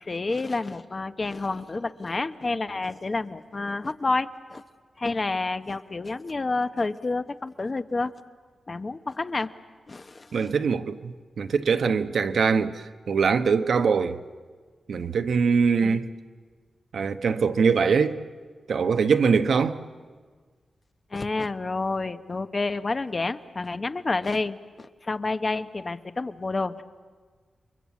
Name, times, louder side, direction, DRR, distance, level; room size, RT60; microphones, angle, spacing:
voice 1, 0.0-4.6 5.0-8.1 8.7-9.5 9.9-10.5 15.8-16.0 21.1-26.8, left 3 dB, 35° left, 1.0 m, -29 dB
voice 2, 10.3-14.2 14.9-16.1 16.9-18.2 18.7-19.8, right 5 dB, 80° right, 1.0 m, -23 dB
29.5 x 23.0 x 8.3 m
wide cardioid pair, 100°, 0 cm